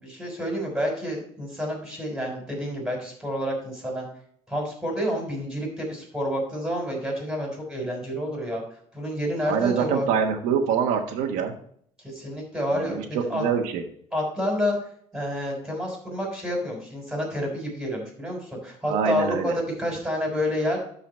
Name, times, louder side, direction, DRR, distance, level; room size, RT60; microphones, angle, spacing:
voice 1, 0.0-4.0 4.5-8.6 8.9-10.1 12.0-13.0 13.3-13.4 14.1-14.8 15.1-20.8, equal, 5° right, 0 dB, 3.6 m, -29 dB
voice 2, 9.4-11.5 12.7-13.8 18.9-19.6, right 7 dB, 90° right, 3 dB, 1.2 m, -25 dB
12.0 x 4.1 x 4.3 m, 0.62 s
cardioid pair, 155°, 13 cm